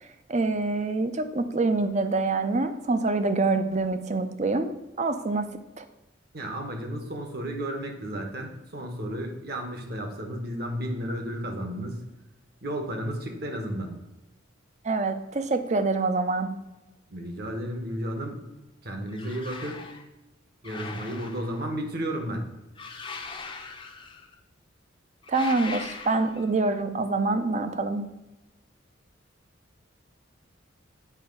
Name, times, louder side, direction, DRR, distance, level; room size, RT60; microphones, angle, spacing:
voice 1, 0.3-4.7 5.0-5.5 5.8-5.9 14.8-16.5 25.3-28.0, right 3 dB, 35° right, 9 dB, 0.5 m, -26 dB
voice 2, 6.3-12.0 12.6-13.9 17.1-18.4 18.8-19.8 20.6-22.4, equal, 50° right, 3 dB, 1.2 m, -33 dB
sound 1, 19.1-20.0 20.6-21.7 22.8-24.4 25.2-26.5, left 4 dB, 25° left, 0.6 m, -40 dB
8.3 x 3.5 x 5.3 m, 1.0 s
head